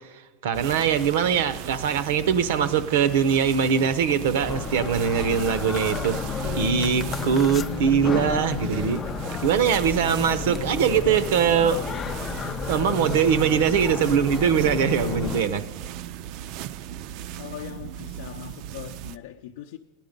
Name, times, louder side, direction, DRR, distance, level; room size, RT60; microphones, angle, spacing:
voice 1, 0.0-6.2 6.6-9.0 9.4-11.8 12.7-15.6, right 7 dB, 80° right, 0.7 m, -22 dB
sound 1, 0.5-19.2, right 11 dB, 50° right, 0.3 m, -37 dB
sound 2, 4.4-15.4, left 7 dB, 25° left, 0.3 m, -32 dB
voice 2, 17.4-19.8, left 10 dB, 80° left, 0.6 m, -40 dB
16.0 x 10.0 x 5.2 m
supercardioid pair, 145°, 0 cm